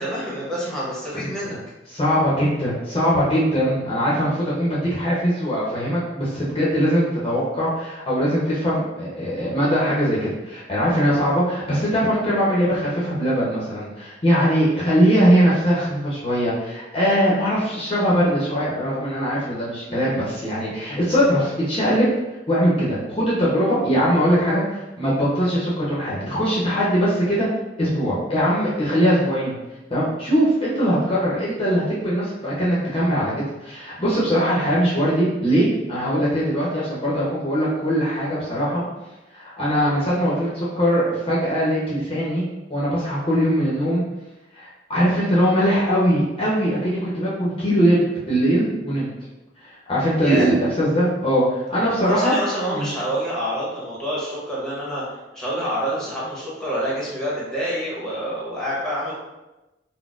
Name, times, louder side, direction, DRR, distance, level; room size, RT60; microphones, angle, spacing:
voice 1, 0.0-1.6 50.2-50.5 52.1-59.1, equal, 5° left, -7 dB, 0.9 m, -27 dB
voice 2, 1.9-22.1 22.5-27.5 27.8-29.5 29.9-33.3 33.6-38.8 39.3-42.4 42.7-44.0 44.5-49.1 49.9-52.4 52.7-52.9, equal, 30° left, -7 dB, 0.7 m, -21 dB
3.9 x 2.1 x 2.4 m, 1.0 s
head